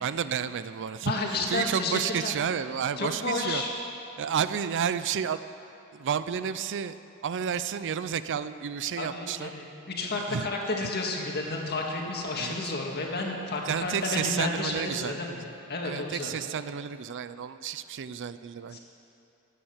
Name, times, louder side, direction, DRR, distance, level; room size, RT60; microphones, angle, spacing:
voice 1, 0.0-3.6 4.2-5.4 5.9-7.0 7.2-9.5 10.1-10.5 10.8-10.9 12.4-12.5 13.7-15.2 15.8-18.8, right 7 dB, 55° right, 13 dB, 0.4 m, -31 dB
voice 2, 1.1-2.3 3.0-3.8 9.0-15.4 15.7-16.3 18.7-18.8, left 2 dB, 50° left, 0 dB, 1.9 m, -31 dB
16.0 x 8.9 x 7.3 m, 2.8 s
head